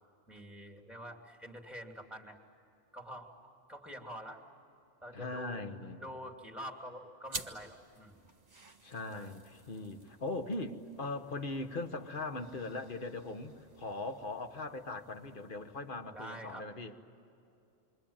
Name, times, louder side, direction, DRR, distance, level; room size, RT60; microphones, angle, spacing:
voice 1, 0.3-2.4 2.9-4.4 5.0-5.7 6.0-8.3 9.1-9.3 16.0-16.7, equal, ahead, 2 dB, 2.8 m, -47 dB
voice 2, 5.1-6.1 8.8-16.9, left 2 dB, 45° left, 7 dB, 1.5 m, -40 dB
sound 1, 7.2-16.2, right 3 dB, 35° right, 1.6 m, -51 dB
28.0 x 24.0 x 8.9 m, 2.7 s
omnidirectional pair, 1.3 m